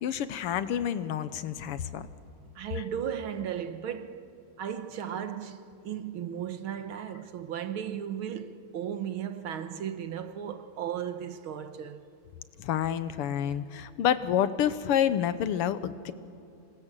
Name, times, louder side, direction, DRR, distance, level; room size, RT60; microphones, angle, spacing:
voice 1, 0.0-2.0 12.6-16.1, left 9 dB, 85° left, 1.9 m, -28 dB
voice 2, 2.6-4.3 4.6-12.0, right 9 dB, 70° right, 1.9 m, -35 dB
26.5 x 26.5 x 7.6 m
omnidirectional pair, 2.4 m